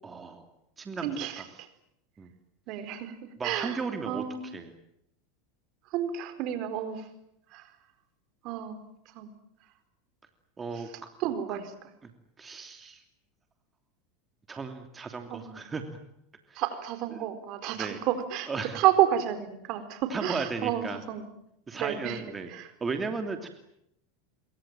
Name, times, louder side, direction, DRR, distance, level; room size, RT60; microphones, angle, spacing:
voice 1, 0.0-0.5 0.8-1.5 2.2-2.3 3.4-4.7 10.6-11.1 11.5-11.6 12.0-12.1 12.4-13.0 14.5-15.8 16.5-16.6 17.7-18.0 18.5-18.8 20.1-21.0 21.7-22.5 22.8-23.5, right 4 dB, 20° right, 6 dB, 2.9 m, -35 dB
voice 2, 1.0-1.4 2.7-3.1 3.4-3.8 4.1-4.4 5.9-7.0 7.5-7.6 8.4-8.8 9.1-9.3 11.2-11.7 15.3-15.6 16.6-18.5 18.7-21.2 21.7-22.2 22.5-22.7, right 11 dB, 55° right, 11 dB, 4.4 m, -30 dB
26.5 x 23.5 x 9.0 m, 0.76 s
supercardioid pair, 120°, 0 cm